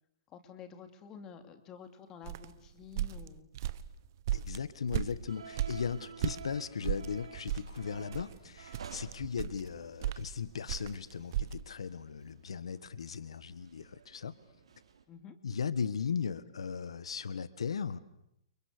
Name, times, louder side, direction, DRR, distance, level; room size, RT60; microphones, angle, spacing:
voice 1, 0.3-3.5 15.1-15.4, left 7 dB, 20° left, 8 dB, 2.7 m, -50 dB
sound 1, 2.2-6.4 6.8-11.6, right 12 dB, 40° right, 1.2 m, -36 dB
voice 2, 4.3-14.3 15.4-18.0, left 6 dB, 90° left, 16 dB, 1.5 m, -37 dB
sound 2, 5.3-15.0, right 6 dB, 80° right, 4.8 m, -53 dB
29.5 x 29.5 x 6.8 m, 0.79 s
hypercardioid pair, 165°, 3 cm